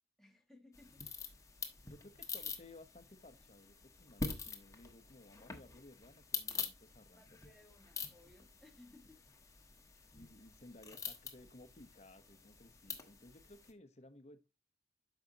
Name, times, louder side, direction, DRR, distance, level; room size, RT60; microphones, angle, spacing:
voice 1, 0.2-1.1 7.1-9.2 9.9-10.1, left 2 dB, ahead, 1.9 m, -62 dB
sound 1, 0.7-13.7, left 4 dB, 20° left, 1.2 m, -46 dB
voice 2, 1.8-7.2 8.8-8.9 10.1-14.5, left 2 dB, 40° left, 1.0 m, -58 dB
9.4 x 6.3 x 2.8 m
head